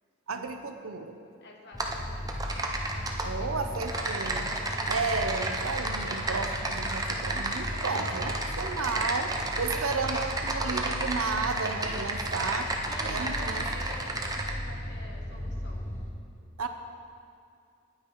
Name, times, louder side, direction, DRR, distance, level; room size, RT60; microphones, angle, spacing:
voice 1, 0.3-1.2 3.2-4.5 4.9-12.7 13.0-13.6 16.6-16.7, right 4 dB, 75° right, 7 dB, 0.7 m, -33 dB
voice 2, 1.4-2.6 2.9-5.0 7.7-8.7 12.9-15.9, left 2 dB, 55° left, 0 dB, 1.3 m, -47 dB
sound 1, 1.7-16.1, left 1 dB, 10° left, 0.9 m, -37 dB
Typing, 1.8-2.0 2.3-3.3 3.7-14.5, right 2 dB, 20° right, 0.6 m, -32 dB
9.7 x 8.8 x 4.5 m, 2.4 s
head